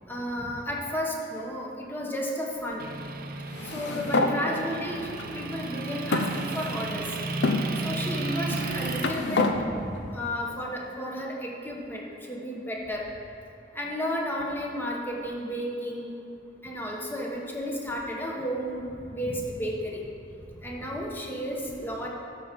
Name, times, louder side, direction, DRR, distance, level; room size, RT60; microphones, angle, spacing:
voice 1, 0.1-2.8 3.7-7.1 7.8-13.0 13.7-16.1 16.6-20.0 20.6-22.1, equal, 10° left, -2 dB, 1.2 m, -33 dB
Motor vehicle (road) / Engine, 2.8-9.2, right 3 dB, 55° right, 0.6 m, -34 dB
sound 1, 3.5-4.4 5.2-5.3 6.1-6.9 7.4-7.6 8.5-9.6, left 3 dB, 70° left, 0.6 m, -27 dB
12.5 x 4.5 x 5.2 m, 2.7 s
head